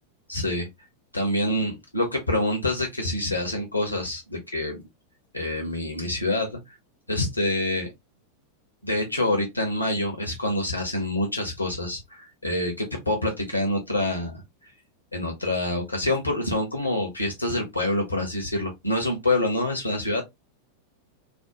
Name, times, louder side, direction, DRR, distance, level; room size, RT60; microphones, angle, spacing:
voice 1, 0.3-0.7 1.1-4.9 5.3-6.6 7.1-7.9 8.8-14.3 15.1-20.2, left 1 dB, 85° left, 0.7 m, -26 dB
2.5 x 2.1 x 2.8 m
figure-of-eight pair, 90°, 0 cm